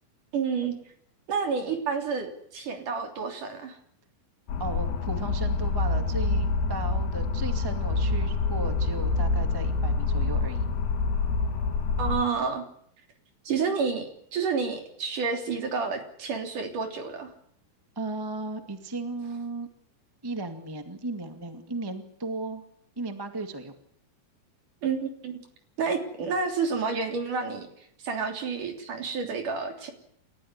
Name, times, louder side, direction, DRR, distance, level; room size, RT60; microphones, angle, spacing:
voice 1, 0.3-0.7 1.3-3.8 12.0-12.6 13.5-17.3 24.8-25.4 25.8-27.7 28.0-29.9, right 5 dB, 55° right, 5 dB, 4.8 m, -29 dB
sound 1, 4.5-12.2, left 3 dB, 80° left, 4.1 m, -26 dB
voice 2, 4.6-10.7 17.9-19.7 20.2-22.6 22.9-23.7, right 3 dB, 10° right, 7 dB, 1.2 m, -35 dB
29.5 x 14.0 x 9.7 m, 0.69 s
omnidirectional pair, 4.4 m